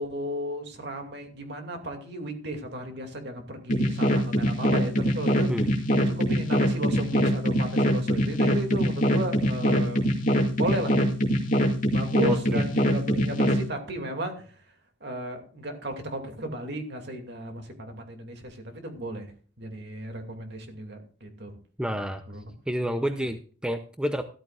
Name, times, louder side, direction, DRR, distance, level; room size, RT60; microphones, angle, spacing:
voice 1, 0.0-5.5 6.1-10.0 10.6-11.0 11.9-14.4 15.0-19.3 19.6-21.6 22.3-22.5 23.1-23.2, right 1 dB, 55° right, 4 dB, 2.5 m, -34 dB
sound 1, 3.7-13.6, equal, 40° left, 2.4 m, -23 dB
voice 2, 12.3-12.6 21.8-22.2 22.7-24.2, equal, 5° right, 7 dB, 0.6 m, -29 dB
14.0 x 13.5 x 2.5 m, 0.40 s
head